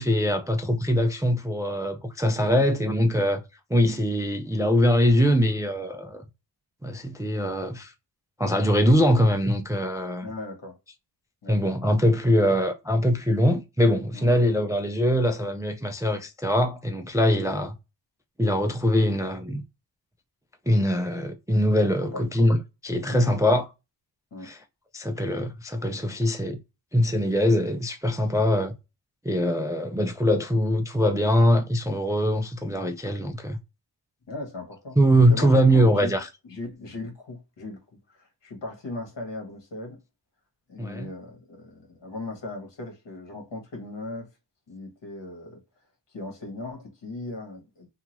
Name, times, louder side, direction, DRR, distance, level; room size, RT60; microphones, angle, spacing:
voice 1, 0.0-3.4 3.7-6.2 6.8-7.9 8.4-10.3 11.5-17.7 18.4-19.6 20.7-22.6 22.8-23.7 24.4-24.6 24.9-26.6 26.9-28.7 29.2-33.6 35.0-36.3 40.8-41.1, equal, 10° right, 0.3 m, -22 dB
voice 2, 10.2-10.8 11.4-11.7 14.1-14.4 22.0-22.3 23.0-23.2 24.3-24.5 34.3-35.0 35.3-36.2 36.4-37.8 38.1-40.0 40.7-44.3 44.7-45.6 46.1-47.9, left 2 dB, 70° left, 1.4 m, -38 dB
2.8 x 2.4 x 2.9 m
wide cardioid pair, 110°, 44 cm